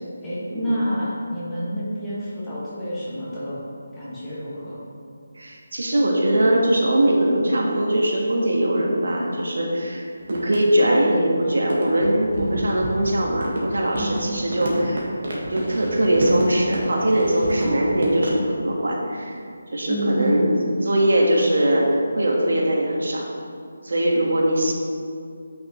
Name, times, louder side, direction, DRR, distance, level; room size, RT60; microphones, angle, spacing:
voice 1, 0.0-3.6 3.9-4.8 12.4-12.6 14.0-14.2 17.6-17.8 19.9-20.6, equal, 10° left, -11 dB, 1.6 m, -28 dB
voice 2, 5.4-15.1 15.5-19.5 19.7-20.5 20.8-23.3 23.8-24.7, right 1 dB, 75° right, -1 dB, 1.5 m, -21 dB
sound 1, 10.2-11.0 11.4-11.5 11.7-18.4, right 1 dB, 50° right, 1.6 m, -30 dB
8.5 x 5.9 x 3.1 m, 2.4 s
figure-of-eight pair, 170°, 0 cm